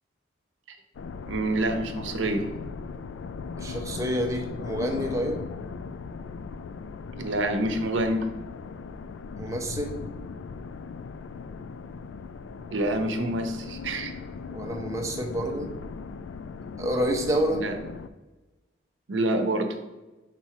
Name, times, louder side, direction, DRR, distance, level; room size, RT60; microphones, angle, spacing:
sound 1, 0.9-18.1, left 5 dB, 90° left, 0.4 m, -38 dB
voice 1, 1.3-2.4 7.2-8.3 12.7-14.1 17.5-17.7 19.1-19.7, right 1 dB, 85° right, 6 dB, 0.8 m, -27 dB
voice 2, 3.6-5.4 9.4-10.0 14.5-15.7 16.8-17.6, equal, 15° right, 2 dB, 0.6 m, -28 dB
4.6 x 4.1 x 5.8 m, 1.1 s
head